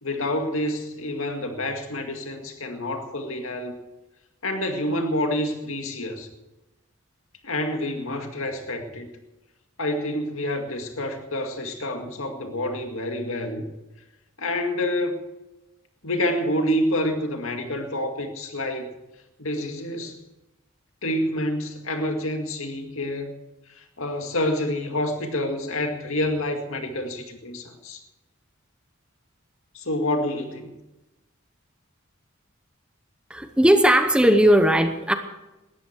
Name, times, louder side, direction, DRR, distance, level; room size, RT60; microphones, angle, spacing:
voice 1, 0.0-3.8 4.4-6.3 7.4-9.1 9.8-13.6 14.4-15.2 16.0-18.9 19.4-20.2 21.0-23.4 23.7-28.0 29.7-30.8, left 1 dB, 75° left, 5 dB, 2.2 m, -28 dB
voice 2, 33.3-35.1, right 1 dB, 5° right, 7 dB, 0.9 m, -17 dB
19.0 x 13.5 x 4.6 m, 1.0 s
head